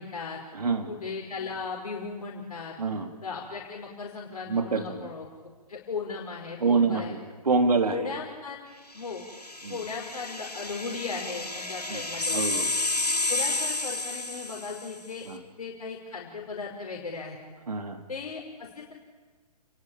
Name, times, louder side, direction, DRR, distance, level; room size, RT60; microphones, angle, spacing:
voice 1, 0.0-0.4 0.9-2.7 3.2-5.3 5.7-7.1 7.8-8.6 8.9-9.2 9.7-12.6 13.3-15.2 15.6-17.4 18.1-18.9, left 4 dB, 65° left, -1 dB, 5.1 m, -37 dB
voice 2, 0.5-0.9 2.8-3.1 4.5-5.1 6.6-7.2 7.5-8.0 9.6-9.8 11.9-12.0 12.3-12.7 15.3-15.4 17.7-18.0, right 4 dB, 70° right, 5 dB, 3.5 m, -26 dB
sound 1, 9.1-15.0, left 2 dB, 90° left, 5.2 m, -31 dB
29.5 x 21.5 x 8.9 m, 1.4 s
figure-of-eight pair, 125°, 20 cm